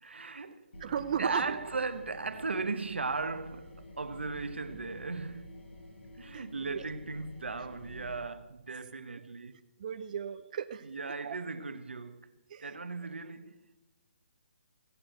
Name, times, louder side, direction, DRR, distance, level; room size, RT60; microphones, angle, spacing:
voice 1, 0.0-0.7 1.2-5.6 6.1-9.5 10.8-12.3 12.6-13.6, right 4 dB, 90° right, 1.2 m, -37 dB
sound 1, 0.7-8.2, left 1 dB, 75° left, 6.1 m, -49 dB
voice 2, 0.8-1.6 6.3-6.9 9.8-10.9 11.2-11.4 12.5-12.7, right 8 dB, 45° right, 0.6 m, -35 dB
16.0 x 8.6 x 7.9 m
hypercardioid pair, 155°, 6 cm